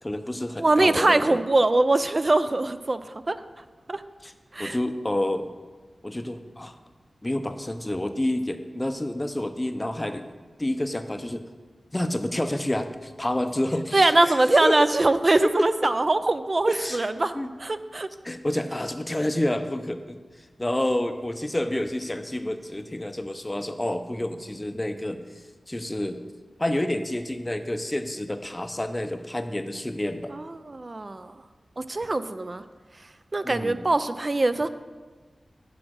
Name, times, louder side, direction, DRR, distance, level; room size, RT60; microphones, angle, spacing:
voice 1, 0.0-1.4 4.2-4.3 4.6-5.5 6.0-6.7 7.2-10.3 10.6-11.4 11.9-14.8 15.3-15.9 16.7-17.1 17.3-17.5 18.2-20.2 20.6-25.2 25.7-26.2 26.6-30.3 33.4-33.9, left 1 dB, 20° left, 8 dB, 0.6 m, -29 dB
voice 2, 0.6-3.4 3.9-4.0 4.5-4.8 13.9-17.3 17.6-18.1 30.3-31.3 31.8-32.6 33.3-34.7, right 2 dB, 35° right, 12 dB, 0.4 m, -22 dB
8.5 x 4.9 x 6.2 m, 1.4 s
wide cardioid pair, 85°, 0 cm